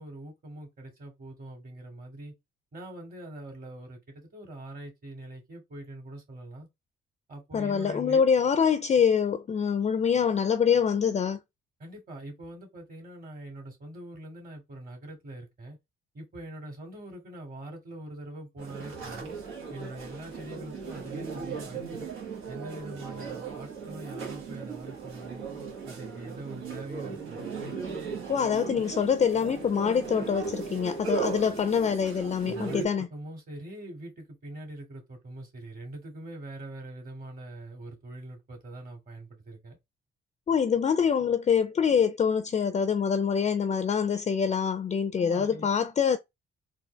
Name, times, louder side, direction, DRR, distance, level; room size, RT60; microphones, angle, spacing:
voice 1, 0.0-2.3 2.7-6.7 7.3-8.2 11.8-15.8 16.1-19.3 19.7-22.1 22.5-25.5 25.8-27.5 32.5-39.8 45.2-45.7, right 1 dB, 45° right, 2.3 m, -43 dB
voice 2, 7.5-11.4 28.3-33.1 40.5-46.2, left 7 dB, 35° left, 0.5 m, -25 dB
sound 1, 18.6-32.8, right 5 dB, 90° right, 1.5 m, -37 dB
3.9 x 2.7 x 3.3 m
cardioid pair, 90°, 20 cm